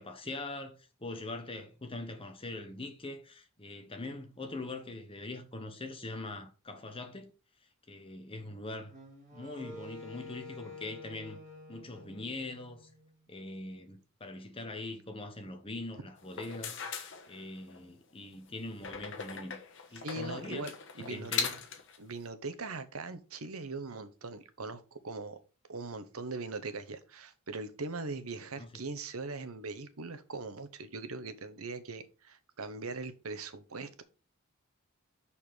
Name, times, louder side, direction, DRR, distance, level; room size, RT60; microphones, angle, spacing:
voice 1, 0.0-7.3 7.9-8.9 9.3-11.4 11.7-12.9 13.3-19.7 19.9-20.7 21.1-21.6 28.6-28.8, left 2 dB, 25° left, 1.2 m, -42 dB
Wind instrument woodwind instrument, 8.9-13.1, left 3 dB, 35° right, 2.9 m, -49 dB
sound 1, 16.2-17.8 18.8-22.0, left 6 dB, 60° left, 1.4 m, -39 dB
voice 2, 20.0-21.3 22.0-25.4 25.7-34.0, right 3 dB, 80° right, 1.0 m, -41 dB
6.4 x 5.7 x 5.0 m
head